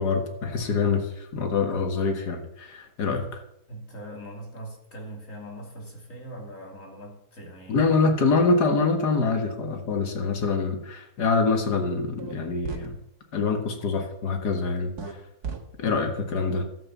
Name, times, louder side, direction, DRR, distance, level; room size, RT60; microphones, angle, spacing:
voice 1, 0.0-3.4 7.7-12.9 13.3-14.9 15.8-16.6, left 4 dB, 90° left, 4 dB, 2.2 m, -25 dB
voice 2, 3.7-7.8 16.2-16.3, right 1 dB, 55° left, -1 dB, 3.2 m, -41 dB
sound 1, 12.2-12.3 12.6-12.9 15.0-15.1 15.4-15.6, right 5 dB, 80° right, 1.9 m, -33 dB
12.5 x 7.7 x 7.3 m, 0.81 s
omnidirectional pair, 1.7 m